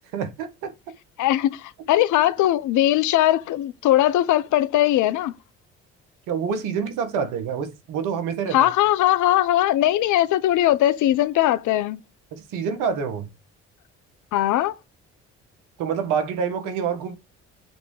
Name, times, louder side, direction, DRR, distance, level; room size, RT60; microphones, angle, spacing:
voice 1, 0.1-0.7 6.3-8.7 12.3-13.3 15.8-17.2, right 6 dB, 80° right, 1.9 m, -27 dB
voice 2, 1.2-5.3 8.5-12.0 14.3-14.7, left 13 dB, 70° left, 0.8 m, -20 dB
7.7 x 3.6 x 4.8 m
supercardioid pair, 70°, 31 cm